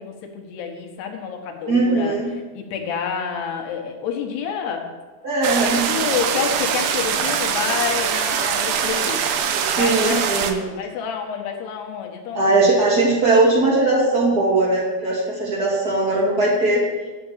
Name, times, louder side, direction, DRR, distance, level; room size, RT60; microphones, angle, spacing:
voice 1, 0.0-2.2 2.5-4.9 5.6-9.3 9.7-10.2 10.5-12.6, left 7 dB, 70° left, 2 dB, 2.8 m, -28 dB
voice 2, 1.7-2.3 5.2-5.8 9.5-10.6 12.3-16.8, right 2 dB, 25° right, -5 dB, 2.2 m, -19 dB
sound 1, 5.4-10.5, right 7 dB, 80° right, 2.1 m, -23 dB
11.0 x 5.8 x 7.2 m, 1.3 s
omnidirectional pair, 5.4 m